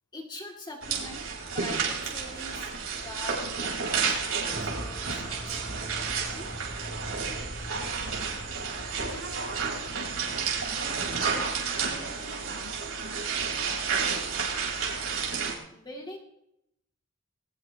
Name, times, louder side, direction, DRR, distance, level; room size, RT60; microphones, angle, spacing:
voice 1, 0.1-1.2 1.5-6.5 7.0-7.1 15.7-16.2, left 2 dB, 20° left, 0 dB, 2.2 m, -44 dB
sound 1, 0.8-15.5, right 5 dB, 75° right, 4.1 m, -31 dB
sound 2, 4.4-12.7, right 1 dB, 10° right, 5.3 m, -44 dB
voice 2, 7.7-8.3 8.9-14.2, right 2 dB, 60° right, -1 dB, 7.6 m, -46 dB
20.5 x 19.5 x 2.9 m, 0.81 s
head